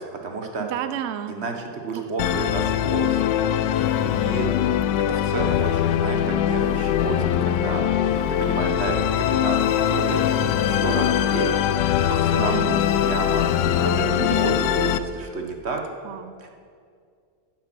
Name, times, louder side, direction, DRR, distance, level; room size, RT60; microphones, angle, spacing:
voice 1, 0.0-0.7 1.3-3.2 4.0-7.8 8.3-13.5 13.8-15.8 16.4-16.5, right 4 dB, 45° right, 3 dB, 1.2 m, -31 dB
voice 2, 0.6-1.4 2.0-2.1 2.3-2.4 12.4-12.8 14.2-14.4 16.0-16.4, right 10 dB, 80° right, 11 dB, 0.6 m, -31 dB
Musical instrument, 2.2-15.0, left 10 dB, 80° left, 1.2 m, -22 dB
10.0 x 8.6 x 7.6 m, 2.2 s
omnidirectional pair, 1.9 m